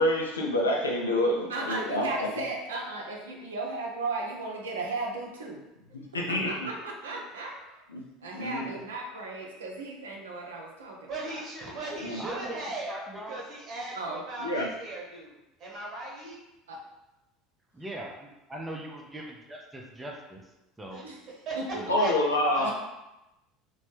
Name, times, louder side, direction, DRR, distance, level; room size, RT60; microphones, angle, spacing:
voice 1, 0.0-2.3 6.1-6.7 7.9-8.0 8.3-8.7 12.0-12.2 14.4-14.7 21.9-22.7, left 1 dB, 80° left, -1 dB, 0.5 m, -27 dB
voice 2, 1.5-5.6 6.1-7.8 8.2-11.4 11.8-12.4 13.9-14.2 16.7-16.8 21.0-22.0 22.6-22.7, right 3 dB, 75° right, -1 dB, 0.5 m, -36 dB
voice 3, 11.1-13.0 13.3-15.3 15.6-16.4 20.9-21.0 21.5-21.6 22.0-22.1 22.5-22.7, right 2 dB, 40° right, -4 dB, 1.1 m, -37 dB
voice 4, 12.2-12.5 12.9-13.4 17.8-20.4 20.8-21.0 21.7-22.0, right 1 dB, 15° right, 0 dB, 0.5 m, -40 dB
3.0 x 2.2 x 3.1 m, 0.94 s
figure-of-eight pair, 70°, 0 cm